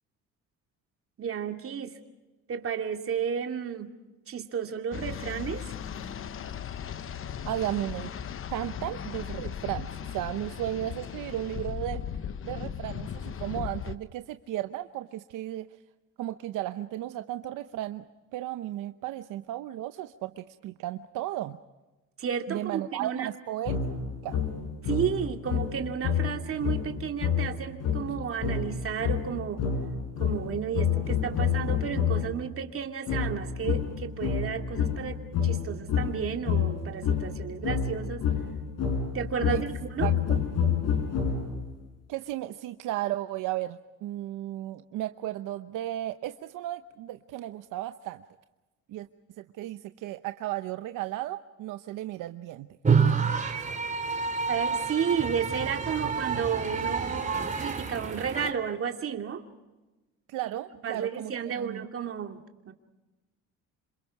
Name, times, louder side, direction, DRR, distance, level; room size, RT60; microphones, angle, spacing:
voice 1, 1.2-2.0 2.5-3.9 4.3-5.6 22.2-23.3 24.8-29.6 30.2-38.3 39.1-40.1 54.5-59.4 60.8-62.7, right 7 dB, 45° right, 4 dB, 2.5 m, -32 dB
sound 1, 4.9-14.0, left 8 dB, 45° left, 0.9 m, -37 dB
voice 2, 7.5-8.2 8.5-12.1 12.4-15.7 16.2-18.0 18.3-21.6 22.5-23.8 24.2-24.4 39.5-39.6 40.0-40.4 42.1-48.2 48.9-49.1 49.4-52.7 60.3-61.9, right 14 dB, 80° right, 9 dB, 0.9 m, -34 dB
sound 2, 23.7-32.4 33.1-41.7, left 7 dB, 85° left, 6.2 m, -29 dB
sound 3, 52.8-58.5, right 5 dB, 25° right, 3.0 m, -28 dB
28.0 x 27.0 x 4.8 m, 1.1 s
cardioid pair, 115°, 31 cm